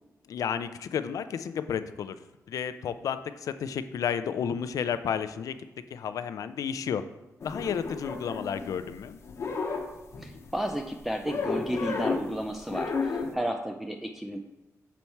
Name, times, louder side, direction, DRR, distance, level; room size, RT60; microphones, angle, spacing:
voice 1, 0.3-2.2 2.5-5.6 5.9-7.0 7.4-9.2, left 7 dB, 75° left, 12 dB, 0.4 m, -32 dB
sound 1, 7.4-9.0 9.2-10.5 11.3-12.4 12.7-13.4, left 4 dB, 50° left, 0.8 m, -32 dB
voice 2, 10.2-14.4, right 1 dB, 5° right, 2 dB, 0.3 m, -33 dB
7.0 x 4.2 x 4.5 m, 1.1 s
wide cardioid pair, 175°, 6 cm